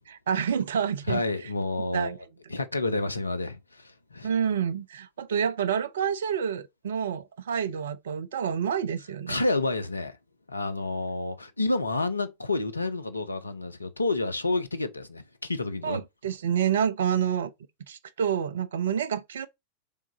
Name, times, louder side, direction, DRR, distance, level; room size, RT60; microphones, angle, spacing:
voice 1, 0.1-1.2 1.9-2.2 4.2-9.4 15.8-17.5 17.9-19.5, right 8 dB, 65° right, 0.5 m, -28 dB
voice 2, 1.1-2.2 2.5-4.3 9.3-10.2 10.5-16.0, left 2 dB, 80° left, 0.6 m, -29 dB
3.7 x 3.6 x 4.0 m
figure-of-eight pair, 90°, 0 cm